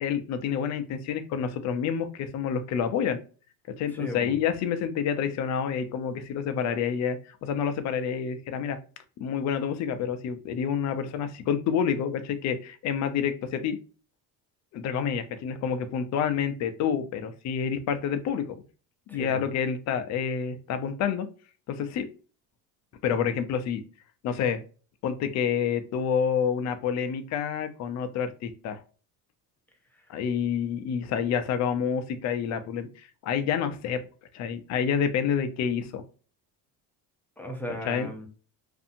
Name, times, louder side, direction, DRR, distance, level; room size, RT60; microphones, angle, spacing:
voice 1, 0.0-3.2 3.8-8.8 9.2-13.8 14.7-18.6 19.1-21.3 21.7-22.1 23.0-23.8 24.2-24.6 25.0-28.8 30.1-34.0 34.3-36.0 37.8-38.1, left 7 dB, 45° left, 8 dB, 0.5 m, -28 dB
voice 2, 3.9-4.3 19.1-19.4 29.9-30.1 37.4-38.3, equal, 5° left, 1 dB, 0.7 m, -37 dB
2.7 x 2.6 x 2.5 m, 0.37 s
cardioid pair, 125°, 39 cm